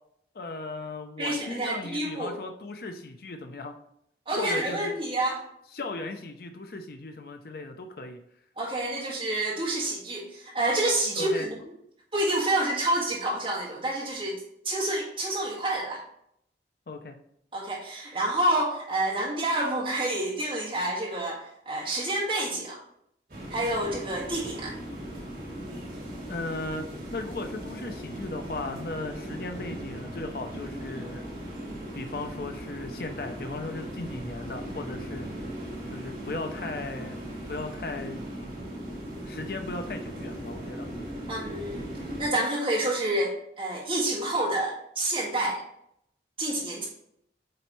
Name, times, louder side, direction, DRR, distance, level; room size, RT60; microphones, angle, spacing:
voice 1, 0.3-3.7 4.4-4.9 5.7-8.2 11.1-11.5 16.9-17.2 26.3-31.2 31.9-35.3 35.9-37.2 37.5-38.2 39.3-40.9, left 2 dB, 55° left, 6 dB, 0.5 m, -37 dB
voice 2, 1.2-2.4 4.3-5.4 8.6-11.5 12.1-16.0 17.5-22.8 23.5-24.7 41.3-41.9 42.2-45.6 46.4-46.9, right 1 dB, 30° right, -3 dB, 1.9 m, -28 dB
sound 1, 23.3-42.3, right 1 dB, 50° right, 2.0 m, -38 dB
7.7 x 4.0 x 3.1 m, 0.72 s
head